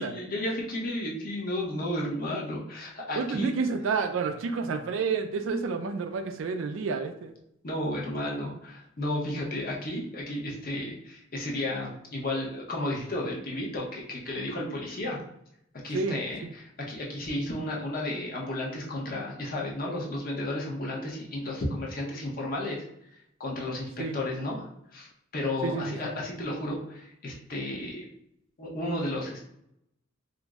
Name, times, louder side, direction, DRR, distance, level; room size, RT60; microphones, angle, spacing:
voice 1, 0.0-3.5 7.6-15.2 15.8-22.8 23.4-28.1 28.6-29.4, left 1 dB, 45° left, -3 dB, 0.7 m, -33 dB
voice 2, 3.2-7.3 15.9-16.2 24.0-24.2 25.6-26.0, right 4 dB, 70° right, 7 dB, 0.3 m, -29 dB
2.5 x 2.0 x 3.5 m, 0.76 s
head